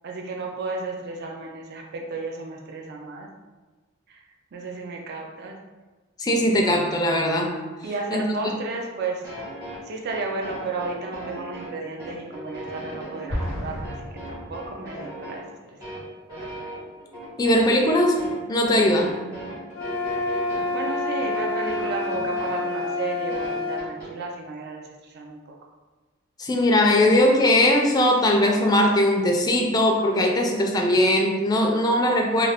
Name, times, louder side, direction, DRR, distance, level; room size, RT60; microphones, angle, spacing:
voice 1, 0.0-3.3 4.1-4.2 4.5-5.6 7.8-9.2 9.9-14.0 14.3-15.4 15.8-16.1 20.7-25.6, right 3 dB, 50° right, 1 dB, 0.4 m, -33 dB
voice 2, 6.2-7.5 8.1-8.2 17.4-18.2 18.5-19.2 26.4-32.5, left 1 dB, 20° left, 1 dB, 0.3 m, -20 dB
sound 1, 9.2-24.1, equal, 15° right, 1.0 m, -38 dB
Explosion, 13.3-15.1, left 1 dB, 80° right, 1.1 m, -32 dB
sound 2, 19.7-23.9, left 2 dB, 90° left, 0.5 m, -28 dB
2.4 x 2.3 x 3.4 m, 1.3 s
head